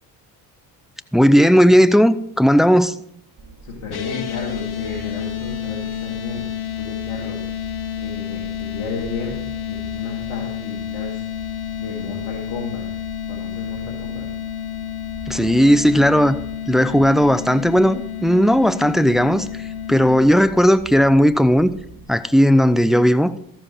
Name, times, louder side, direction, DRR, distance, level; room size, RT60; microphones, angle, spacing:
voice 1, 1.1-2.9 15.3-16.4 16.7-21.7 22.1-23.3, equal, ahead, 0.6 m, -15 dB
sound 1, 3.4-22.1, right 4 dB, 45° right, 2.1 m, -43 dB
voice 2, 3.6-6.5 6.8-7.6 8.0-9.4 9.7-11.2 11.8-13.0 13.3-14.3, left 4 dB, 85° left, 2.3 m, -33 dB
sound 2, 3.9-20.2, left 10 dB, 50° left, 1.4 m, -30 dB
13.5 x 7.4 x 4.4 m
hypercardioid pair, 55°, 47 cm